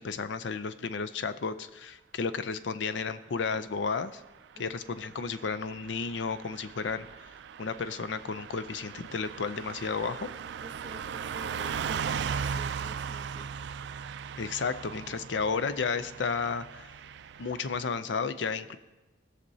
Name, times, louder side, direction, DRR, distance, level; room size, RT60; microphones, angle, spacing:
voice 1, 0.0-4.2 4.6-7.0 7.6-10.3 14.4-16.9 17.4-18.8, left 5 dB, 80° left, 12 dB, 0.5 m, -32 dB
Car passing by / Truck, 4.9-17.9, right 7 dB, 70° right, 0.3 m, -38 dB
voice 2, 10.6-13.5, right 1 dB, 25° right, 7 dB, 0.6 m, -48 dB
19.0 x 6.5 x 2.7 m, 1.1 s
head